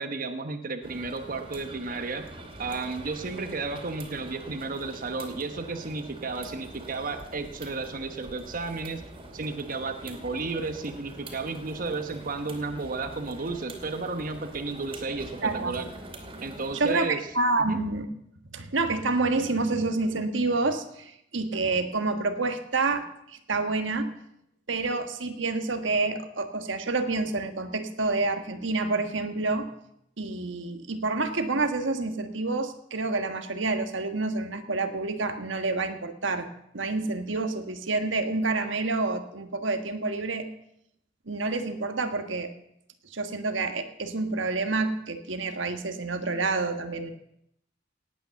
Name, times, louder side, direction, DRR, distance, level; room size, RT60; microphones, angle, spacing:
voice 1, 0.0-2.3 2.6-9.0 9.3-15.9 16.4-17.2 17.7-17.8, right 3 dB, 50° right, 7 dB, 1.1 m, -33 dB
sound 1, 0.8-17.1, right 1 dB, 30° right, 2.6 m, -44 dB
voice 2, 15.4-15.8 16.7-18.1 18.5-24.1 24.7-29.7 30.2-36.5 36.7-40.5 41.3-42.5 43.1-47.1, right 3 dB, 90° right, 7 dB, 1.5 m, -28 dB
18.0 x 9.0 x 7.0 m, 0.76 s
head